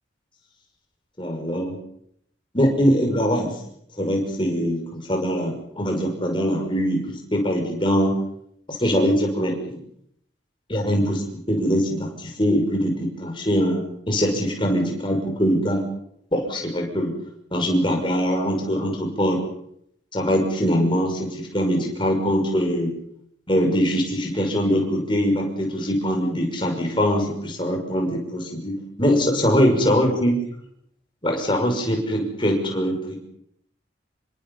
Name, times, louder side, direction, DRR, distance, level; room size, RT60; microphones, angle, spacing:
voice 1, 1.2-1.8 2.5-3.5 4.0-8.1 8.7-9.8 10.7-15.8 16.3-17.1 17.5-19.4 20.1-22.9 23.5-30.4 31.2-33.2, equal, 25° left, 2 dB, 6.1 m, -22 dB
27.5 x 25.0 x 5.7 m, 0.71 s
head